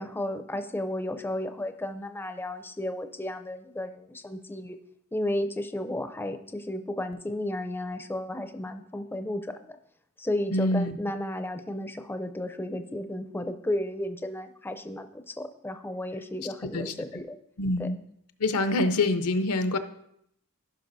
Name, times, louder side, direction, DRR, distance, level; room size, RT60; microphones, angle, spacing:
voice 1, 0.0-4.8 5.1-9.8 10.2-17.4 17.8-17.9, left 1 dB, 10° left, 8 dB, 0.5 m, -33 dB
voice 2, 10.5-11.0 16.7-16.9 17.6-18.0 18.4-19.8, left 2 dB, 80° left, 8 dB, 0.7 m, -25 dB
15.0 x 5.9 x 2.6 m, 0.73 s
head